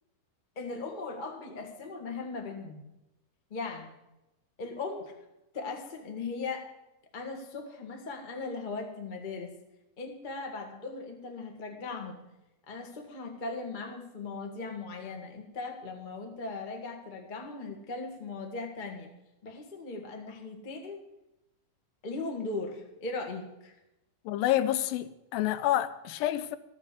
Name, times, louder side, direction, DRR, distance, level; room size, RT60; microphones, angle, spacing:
voice 1, 0.5-2.8 3.5-3.9 4.6-5.1 5.5-6.7 7.1-9.5 10.0-12.2 12.7-19.1 19.4-21.0 22.0-23.7, left 3 dB, 50° left, 0.5 m, -38 dB
voice 2, 24.3-26.6, left 13 dB, 80° left, 2.4 m, -28 dB
13.5 x 7.5 x 8.3 m
omnidirectional pair, 4.2 m